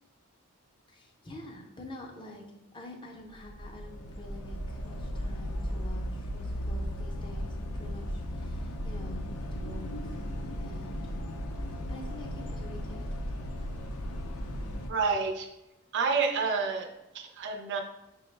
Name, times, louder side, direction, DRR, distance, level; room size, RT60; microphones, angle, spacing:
voice 1, 0.9-2.4 2.7-10.3 10.6-11.1 11.9-13.1, left 1 dB, 20° left, 1 dB, 0.5 m, -47 dB
sound 1, 3.3-14.9, equal, 70° left, 0.5 m, -36 dB
voice 2, 14.9-15.5 15.9-17.8, right 5 dB, 55° right, 3 dB, 0.4 m, -29 dB
5.7 x 2.1 x 3.2 m, 0.94 s
head